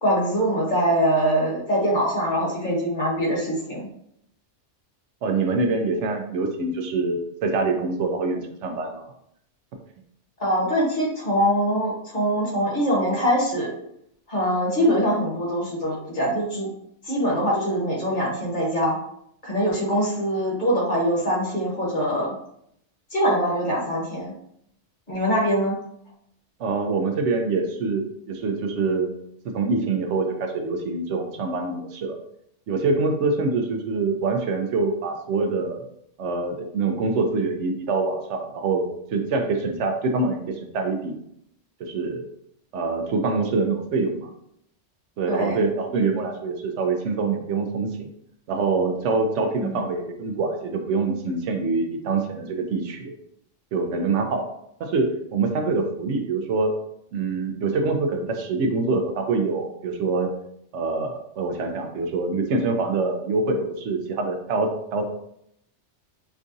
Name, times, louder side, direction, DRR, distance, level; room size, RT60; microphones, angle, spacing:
voice 1, 0.0-3.9 10.4-13.7 14.3-16.7 17.0-19.0 19.4-22.3 23.1-24.3 25.1-25.7 45.3-45.6 49.6-49.8, equal, 40° left, -4 dB, 1.3 m, -23 dB
voice 2, 5.2-9.0 26.6-29.1 29.4-32.2 32.7-35.8 36.2-38.8 39.1-41.2 41.8-42.3 42.7-44.3 45.2-48.1 48.5-53.1 53.7-54.5 54.8-56.7 57.1-60.3 60.7-65.1, right 3 dB, 75° right, 4 dB, 0.9 m, -25 dB
4.6 x 2.3 x 2.6 m, 0.72 s
omnidirectional pair, 1.2 m